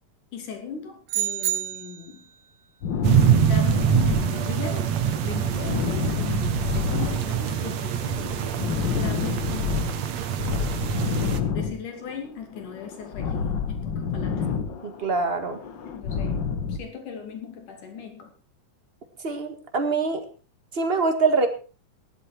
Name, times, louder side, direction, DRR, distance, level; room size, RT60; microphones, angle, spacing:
voice 1, 0.3-2.3 3.4-8.6 8.9-10.1 11.4-13.4 13.7-14.5 15.8-18.3, left 7 dB, 80° left, 4 dB, 4.4 m, -38 dB
sound 1, 1.1-2.2, right 12 dB, 90° right, 3.3 m, -28 dB
sound 2, 2.8-4.9 5.2-10.0 10.4-12.3 12.6-15.1 15.4-16.8, left 6 dB, 50° left, 1.5 m, -29 dB
sound 3, 3.0-11.4, right 9 dB, 65° right, 2.3 m, -25 dB
voice 2, 14.8-15.6 19.2-20.2 20.7-21.5, right 4 dB, 25° right, 6 dB, 1.4 m, -24 dB
16.5 x 11.5 x 4.5 m, 0.36 s
omnidirectional pair, 3.6 m